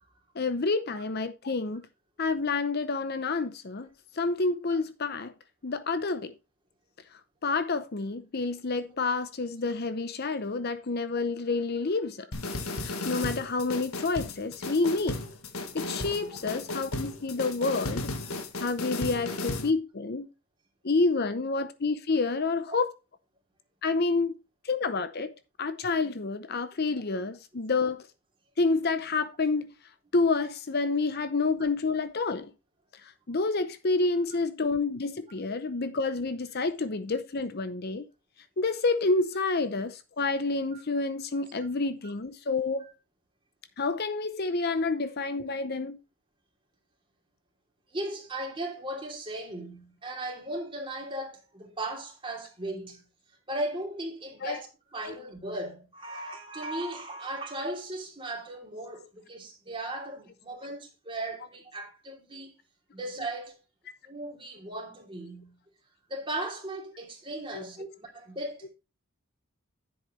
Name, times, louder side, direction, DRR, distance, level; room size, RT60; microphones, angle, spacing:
voice 1, 0.4-1.8 2.2-3.9 4.2-5.3 5.6-6.3 7.4-12.3 12.8-15.2 15.7-18.1 18.6-20.3 20.8-22.9 23.8-24.3 24.6-25.3 25.6-28.0 28.6-29.7 30.1-32.5 33.3-38.0 38.6-42.9 43.8-46.0 54.4-54.6 67.5-67.6, left 3 dB, 45° left, 0.7 m, -28 dB
sound 1, 12.3-19.7, left 2 dB, 80° left, 1.6 m, -35 dB
voice 2, 47.9-53.0 53.5-62.5 62.9-63.6 64.0-65.5 66.1-68.7, right 1 dB, 25° right, 2.9 m, -37 dB
10.0 x 8.0 x 3.2 m
head